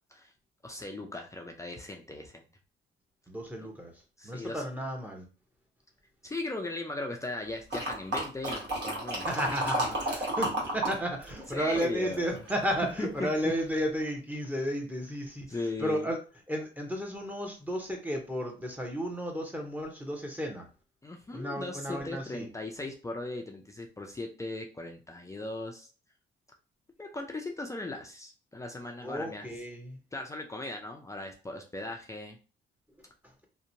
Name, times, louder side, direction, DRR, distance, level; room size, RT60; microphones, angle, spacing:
voice 1, 0.6-2.5 4.2-4.6 6.2-9.3 11.5-12.4 13.0-13.3 15.5-16.1 21.0-25.9 27.0-29.5 30.1-32.4, left 2 dB, 15° left, 2 dB, 0.4 m, -38 dB
voice 2, 3.3-5.2 9.2-16.2 16.5-20.7 21.3-22.5 29.0-30.0 33.2-33.5, equal, 10° right, 2 dB, 0.8 m, -33 dB
sound 1, 7.7-11.0 11.2-12.7 13.2-13.3, right 1 dB, 60° right, 1.3 m, -32 dB
2.8 x 2.1 x 2.6 m, 0.35 s
cardioid pair, 90°, 20 cm